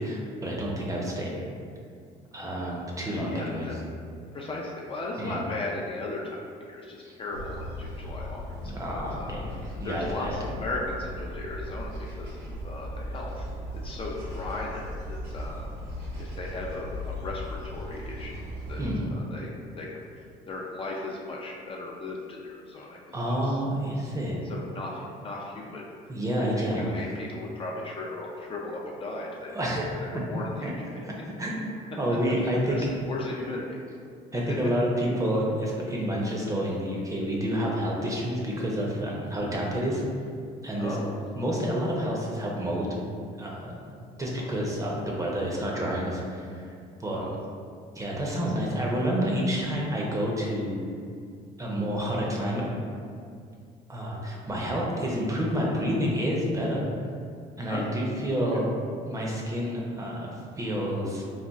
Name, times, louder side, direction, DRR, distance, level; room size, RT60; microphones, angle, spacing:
voice 1, 0.0-1.3 2.3-3.7 5.2-5.4 7.0-7.1 8.6-9.5 9.8-10.4 18.8-19.0 23.1-24.4 26.1-26.9 29.5-30.0 30.3-30.7 31.0-31.1 31.4-32.8 34.3-40.0 40.6-41.0 41.4-42.9 43.4-46.6 47.0-47.2 47.9-50.7 51.6-52.7 53.9-56.8 57.6-58.7 59.0-60.3 60.6-61.2, equal, 20° right, -3 dB, 0.6 m, -29 dB
voice 2, 3.1-3.8 4.3-9.5 9.8-11.9 12.2-13.5 13.7-15.7 16.2-18.4 18.7-20.1 20.5-23.6 24.0-24.1 24.4-25.8 26.4-29.6 30.0-31.0 32.1-32.2 32.6-33.8 34.5-34.6 40.8-41.1 44.2-44.5 47.1-47.4 57.7-57.9 58.5-58.7, left 2 dB, 30° left, -3 dB, 0.4 m, -37 dB
sound 1, 7.3-19.0, left 1 dB, 70° right, 0.9 m, -37 dB
4.0 x 2.3 x 2.3 m, 2.2 s
cardioid pair, 110°, 17 cm